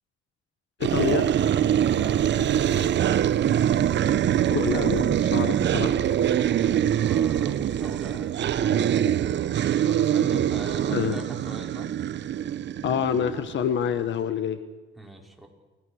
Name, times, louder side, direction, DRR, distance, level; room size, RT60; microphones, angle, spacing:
voice 1, 0.8-1.3 4.5-6.0 10.9-11.2 12.8-14.6, left 9 dB, 70° left, 11 dB, 1.5 m, -27 dB
sound 1, 0.8-13.7, right 10 dB, 65° right, 1.0 m, -24 dB
voice 2, 1.9-2.9 6.4-9.3 9.8-11.9 15.0-15.5, right 1 dB, ahead, 0 dB, 5.3 m, -41 dB
29.5 x 17.5 x 6.5 m, 1.2 s
cardioid pair, 90°, 20 cm